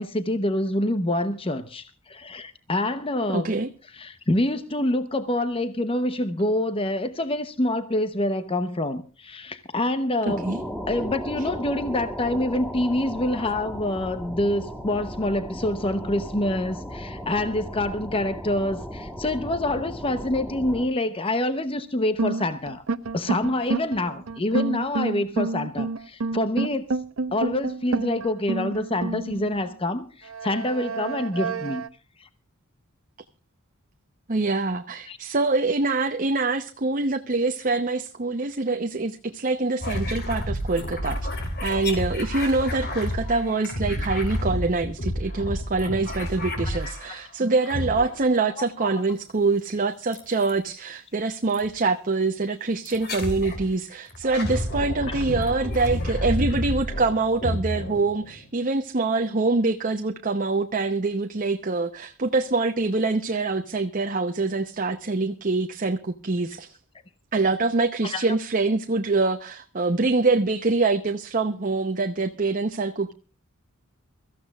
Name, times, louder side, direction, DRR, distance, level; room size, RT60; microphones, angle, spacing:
voice 1, 0.0-3.5 3.9-10.4 10.9-22.8 23.1-27.0 27.3-31.8 32.2-32.3 35.1-35.2 46.7-46.9 48.6-48.9 55.1-55.2 68.0-68.2, left 1 dB, 25° left, 10 dB, 0.8 m, -26 dB
voice 2, 3.3-3.7 10.3-10.6 11.4-11.5 34.3-41.3 41.6-66.7 67.3-73.1, right 3 dB, 40° right, 6 dB, 0.8 m, -25 dB
sound 1, 10.3-20.9, equal, ahead, 1.3 m, -36 dB
sound 2, 22.2-29.7 30.3-31.9, right 3 dB, 70° right, 0.8 m, -29 dB
sound 3, 39.8-47.3 47.7-48.4 50.1-50.6 51.5-51.7 52.9-53.7 54.1-58.5, left 1 dB, 50° left, 3.1 m, -30 dB
23.5 x 14.5 x 2.4 m, 0.35 s
head